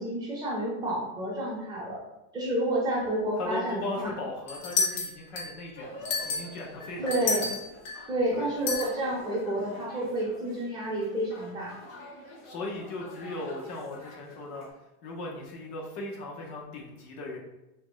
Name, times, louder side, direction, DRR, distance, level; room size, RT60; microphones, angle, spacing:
voice 1, 0.0-2.0 2.3-4.1 7.0-7.5 8.1-11.7, right 1 dB, 10° right, -5 dB, 0.7 m, -30 dB
voice 2, 3.4-7.5 8.3-8.5 12.4-14.7 15.0-17.4, left 2 dB, 80° left, -1 dB, 0.9 m, -38 dB
sound 1, 4.5-5.6 6.0-8.0 8.7-8.9, left 4 dB, 55° left, 0.9 m, -30 dB
sound 2, 5.8-14.7, left 1 dB, 30° left, 0.7 m, -46 dB
3.0 x 2.8 x 3.7 m, 0.95 s
supercardioid pair, 165°, 45 cm